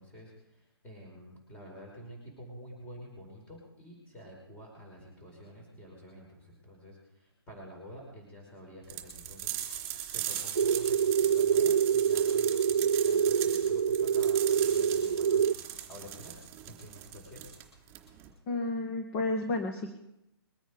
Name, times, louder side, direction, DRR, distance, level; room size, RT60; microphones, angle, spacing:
voice 1, 0.0-9.9 10.1-16.4 16.7-17.4, equal, 10° left, -1 dB, 5.0 m, -49 dB
sound 1, 8.9-18.3, right 11 dB, 20° right, 3.4 m, -39 dB
sound 2, 10.5-15.5, right 7 dB, 85° right, 0.5 m, -26 dB
voice 2, 18.5-19.9, left 2 dB, 25° left, 5 dB, 1.7 m, -31 dB
22.5 x 9.3 x 5.2 m, 0.83 s
hypercardioid pair, 150°, 13 cm